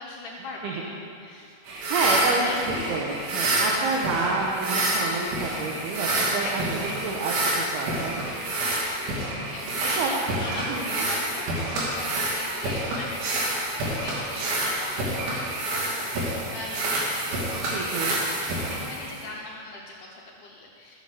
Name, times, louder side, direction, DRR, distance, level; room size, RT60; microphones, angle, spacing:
voice 1, 0.0-1.6 2.4-2.6 3.4-3.8 6.4-7.2 8.6-9.1 9.5-21.0, left 2 dB, 90° left, -2 dB, 1.8 m, -41 dB
voice 2, 1.6-8.7 10.0-10.1 10.7-10.8 17.7-18.2, right 3 dB, 75° right, -2 dB, 2.8 m, -29 dB
sound 1, 1.7-19.3, right 1 dB, 90° right, 4.6 m, -28 dB
13.0 x 8.3 x 6.8 m, 2.5 s
omnidirectional pair, 5.1 m